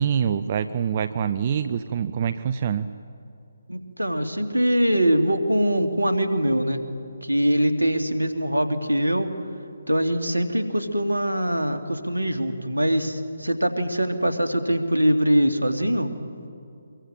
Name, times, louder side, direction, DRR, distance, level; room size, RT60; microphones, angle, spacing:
voice 1, 0.0-2.9, right 8 dB, 35° right, 12 dB, 0.7 m, -25 dB
voice 2, 3.7-6.8 7.2-9.3 9.9-16.1, equal, 90° right, 7 dB, 2.5 m, -23 dB
25.0 x 23.0 x 8.9 m, 2.5 s
figure-of-eight pair, 145°, 0 cm